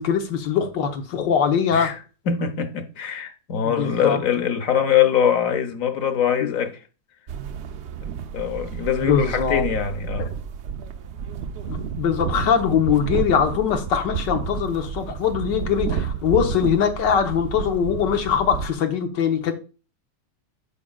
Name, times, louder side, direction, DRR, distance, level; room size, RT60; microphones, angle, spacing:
voice 1, 0.0-1.9 3.6-4.2 6.4-6.5 9.0-9.6 10.2-10.3 11.7-19.5, left 7 dB, 90° left, 1.7 m, -22 dB
voice 2, 2.3-6.8 8.0-10.3, left 8 dB, 55° left, 1.1 m, -23 dB
sound 1, 7.3-18.7, right 7 dB, 85° right, 0.6 m, -31 dB
14.0 x 4.9 x 2.3 m
omnidirectional pair, 1.9 m